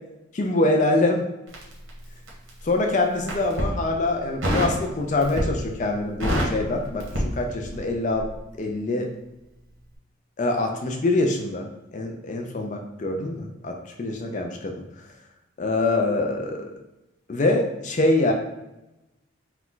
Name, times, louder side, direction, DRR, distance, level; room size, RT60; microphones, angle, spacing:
voice 1, 0.3-1.2 2.6-8.3 8.6-9.1 10.4-11.7 11.9-14.8 15.6-16.7 17.3-18.3, left 2 dB, 40° left, 2 dB, 0.4 m, -24 dB
Crackle, 1.5-2.6 3.2-3.7 4.4-4.8 5.2-5.7 6.0-7.9 8.2-8.4, equal, 85° right, 1.2 m, -27 dB
4.5 x 2.3 x 3.8 m, 0.95 s
head